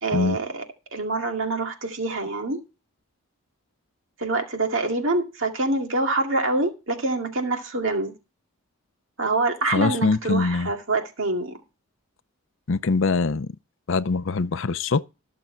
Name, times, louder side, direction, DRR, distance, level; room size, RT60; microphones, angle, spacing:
voice 1, 0.0-0.6 0.9-2.6 4.2-8.1 9.2-11.6, right 2 dB, 60° right, 2.2 m, -25 dB
voice 2, 9.6-10.7 12.7-13.5 13.9-15.1, left 4 dB, 60° left, 0.5 m, -23 dB
14.5 x 6.9 x 4.5 m
head